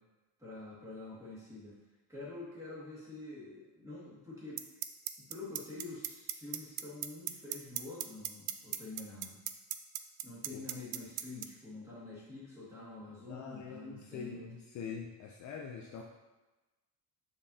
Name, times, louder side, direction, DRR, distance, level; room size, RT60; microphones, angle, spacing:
voice 1, 0.4-1.8 2.1-4.6 5.3-9.4 10.2-14.4, left 2 dB, 5° right, -9 dB, 2.0 m, -47 dB
sound 1, 4.6-11.5, right 13 dB, 60° right, 0.5 m, -36 dB
voice 2, 13.3-16.0, left 6 dB, 45° left, 0 dB, 0.5 m, -44 dB
6.8 x 5.5 x 2.8 m, 1.1 s
cardioid pair, 165°, 42 cm